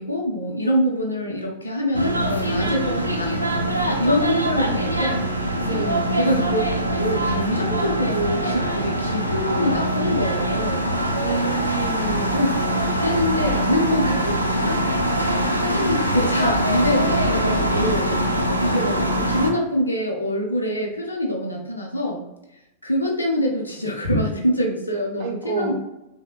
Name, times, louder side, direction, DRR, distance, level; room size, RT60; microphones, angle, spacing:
voice 1, 0.0-5.2 6.1-6.6 7.0-11.5 12.2-12.5 12.8-14.8 15.6-18.3 18.6-22.3 22.8-25.7, left 1 dB, 80° left, 1 dB, 0.5 m, -25 dB
sound 1, 1.9-19.5, right 1 dB, 90° right, 0.3 m, -23 dB
voice 2, 5.6-6.2 11.2-12.3 25.2-25.7, right 4 dB, 45° right, 0 dB, 0.6 m, -29 dB
3.2 x 2.0 x 2.3 m, 0.89 s
figure-of-eight pair, 90°, 0 cm